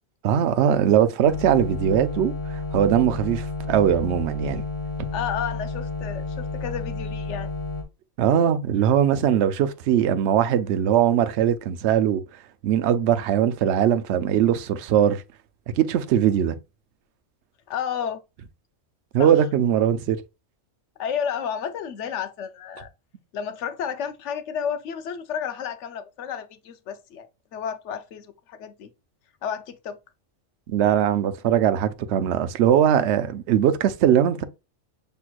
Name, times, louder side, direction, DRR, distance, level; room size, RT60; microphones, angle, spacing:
voice 1, 0.2-4.6 8.2-12.2 12.6-15.2 15.8-16.5 19.1-20.2 30.7-34.4, right 9 dB, 65° right, 0.8 m, -20 dB
sound 1, 1.3-7.8, left 3 dB, 30° left, 0.8 m, -31 dB
voice 2, 5.1-7.5 17.7-18.2 19.2-19.3 21.0-22.9 23.3-27.3 27.5-28.9 29.4-30.0, left 8 dB, 70° left, 0.9 m, -31 dB
6.0 x 3.3 x 2.3 m
omnidirectional pair, 1.3 m